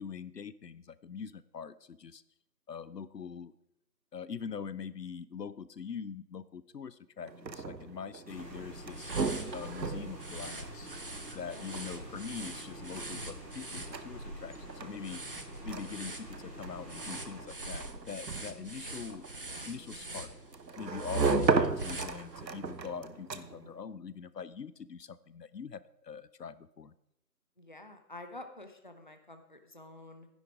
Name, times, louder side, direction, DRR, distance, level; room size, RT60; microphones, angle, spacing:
voice 1, 0.0-2.2 2.7-3.5 4.1-9.1 9.5-10.9 11.3-15.2 15.6-19.3 19.7-20.3 20.8-26.9, left 6 dB, 75° left, 17 dB, 0.7 m, -43 dB
sound 1, 7.2-23.8, right 4 dB, 90° right, 1.1 m, -36 dB
sound 2, 8.3-17.4, equal, 10° right, 1.4 m, -48 dB
sound 3, 8.9-22.6, right 2 dB, 35° right, 0.8 m, -44 dB
voice 2, 27.6-30.3, left 2 dB, 30° left, 7 dB, 0.7 m, -49 dB
11.5 x 10.5 x 4.9 m, 0.83 s
figure-of-eight pair, 160°, 49 cm